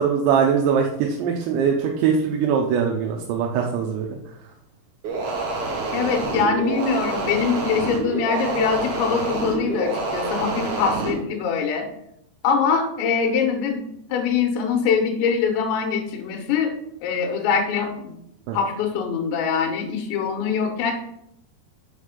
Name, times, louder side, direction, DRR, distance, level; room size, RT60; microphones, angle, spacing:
voice 1, 0.0-4.2 18.5-18.6, right 7 dB, 80° right, 0 dB, 2.9 m, -22 dB
sound 1, 5.0-11.2, right 3 dB, 65° right, 2.0 m, -27 dB
voice 2, 5.9-11.8 12.4-13.8 14.1-16.7 17.0-18.2 18.5-20.9, left 6 dB, 80° left, 0 dB, 3.1 m, -23 dB
6.5 x 4.9 x 5.2 m, 0.77 s
omnidirectional pair, 5.3 m